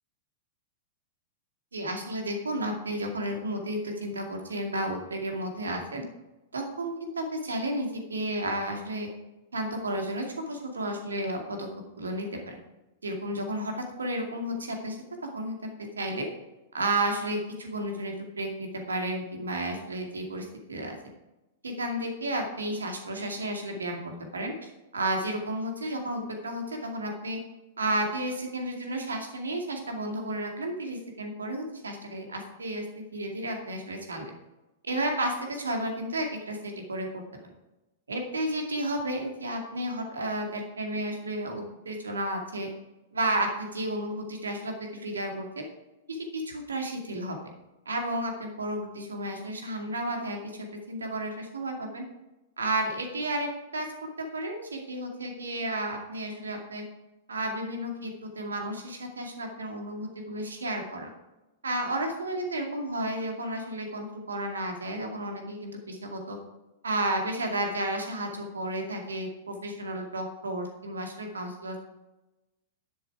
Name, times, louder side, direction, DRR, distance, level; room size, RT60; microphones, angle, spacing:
voice 1, 1.7-6.0 6.5-9.1 9.5-11.7 12.0-12.6 13.0-15.0 15.3-15.7 16.0-16.3 16.7-21.0 21.6-27.4 27.8-34.3 34.8-37.2 38.1-42.7 43.1-45.6 46.1-47.4 47.9-52.0 52.6-56.8 57.3-61.1 61.6-66.4 66.8-71.8, right 1 dB, 75° right, 3 dB, 2.3 m, -32 dB
11.0 x 7.8 x 4.8 m, 1.0 s
figure-of-eight pair, 100°, 0 cm